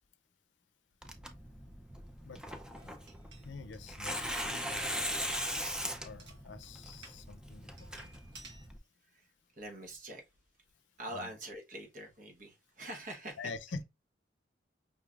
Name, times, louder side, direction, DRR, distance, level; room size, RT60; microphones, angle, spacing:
Tearing, 1.0-8.8, equal, 5° right, 0.5 m, -40 dB
sound 1, 2.7-7.2 7.8-8.7, right 3 dB, 80° right, 1.5 m, -58 dB
voice 1, 3.4-5.0 6.0-7.9 11.1-11.3 13.4-13.8, left 4 dB, 85° left, 0.5 m, -46 dB
voice 2, 9.6-10.2 11.0-13.5, right 1 dB, 45° right, 1.1 m, -44 dB
5.4 x 3.2 x 2.4 m
head